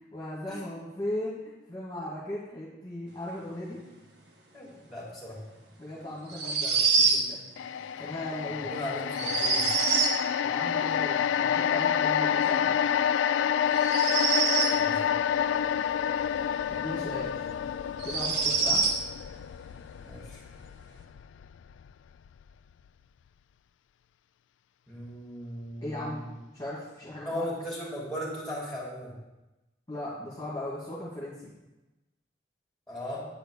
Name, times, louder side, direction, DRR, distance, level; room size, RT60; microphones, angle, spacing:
voice 1, 0.1-1.4 1.7-3.8 5.8-7.4 8.0-8.8 10.4-12.7 16.7-17.5 18.0-18.8 25.8-26.2 26.5-27.5 29.9-31.5, left 1 dB, 20° left, -8 dB, 2.3 m, -37 dB
voice 2, 4.5-5.4 8.7-9.7 14.7-15.2 20.0-20.4 24.9-26.3 27.2-29.1 32.9-33.2, equal, ahead, -6 dB, 3.1 m, -37 dB
sound 1, 6.3-7.3 9.1-10.2 13.7-14.8 17.0-17.1 18.0-19.0, right 4 dB, 70° right, 1.3 m, -25 dB
sound 2, 7.6-21.9 22.3-22.4, left 8 dB, 85° left, 0.3 m, -28 dB
9.3 x 5.1 x 6.6 m, 1.0 s
head